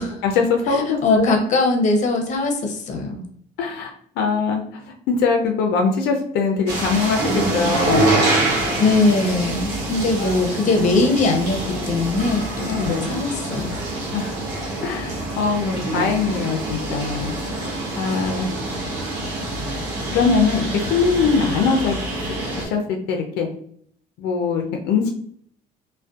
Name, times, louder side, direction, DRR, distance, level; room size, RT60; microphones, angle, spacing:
voice 1, 0.0-1.4 3.6-8.1 10.2-10.4 12.6-13.1 14.1-14.3 14.8-17.3 18.0-18.5 20.1-21.9 22.6-23.5 24.2-25.1, left 5 dB, 85° left, 3 dB, 0.4 m, -22 dB
voice 2, 0.7-3.2 8.8-13.7, left 3 dB, 45° left, 3 dB, 0.6 m, -21 dB
sound 1, 6.7-22.7, right 2 dB, 90° right, 0.7 m, -25 dB
2.5 x 2.1 x 2.3 m, 0.63 s
cardioid pair, 95°, 17 cm